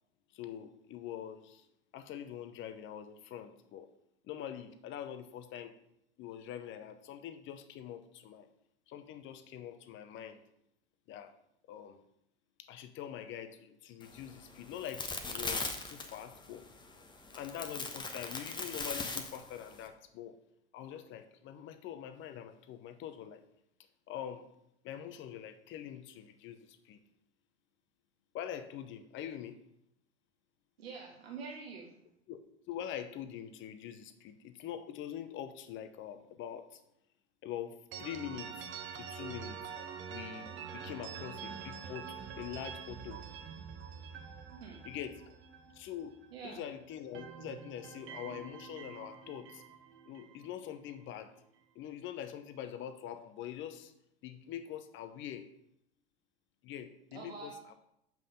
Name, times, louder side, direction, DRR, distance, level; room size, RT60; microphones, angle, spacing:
voice 1, 0.3-1.7 1.9-3.9 4.2-5.8 6.2-8.5 8.9-10.4 11.1-11.4 11.7-12.0 12.6-16.7 17.3-20.4 20.7-23.4 24.1-24.5 24.8-27.0 28.3-29.6 32.3-36.8 37.4-39.6 40.1-43.2 44.8-45.4 45.7-49.6 50.1-51.3 51.7-53.9 54.2-55.5 56.6-57.7, left 10 dB, 40° left, 10 dB, 0.9 m, -44 dB
sound 1, 14.0-19.9, left 3 dB, 15° left, 1.1 m, -40 dB
voice 2, 30.8-31.9 44.6-44.8 46.3-46.6 57.1-57.7, right 5 dB, 75° right, 0 dB, 1.5 m, -46 dB
sound 2, 37.9-46.6 46.9-51.0, right 6 dB, 40° right, 1.1 m, -46 dB
7.6 x 5.6 x 5.1 m, 0.77 s
figure-of-eight pair, 75°, 31 cm